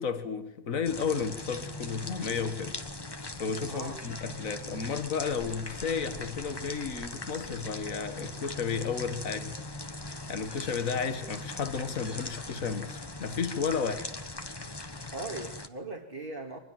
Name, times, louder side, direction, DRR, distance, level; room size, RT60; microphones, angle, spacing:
voice 1, 0.0-2.8 3.3-9.6 10.3-14.1, left 6 dB, 75° left, 2.0 m, -33 dB
sound 1, 0.8-15.7, left 2 dB, 20° left, 1.3 m, -40 dB
voice 2, 3.7-4.0 15.1-16.6, right 2 dB, 40° right, 2.7 m, -39 dB
24.0 x 21.0 x 7.6 m
omnidirectional pair, 1.4 m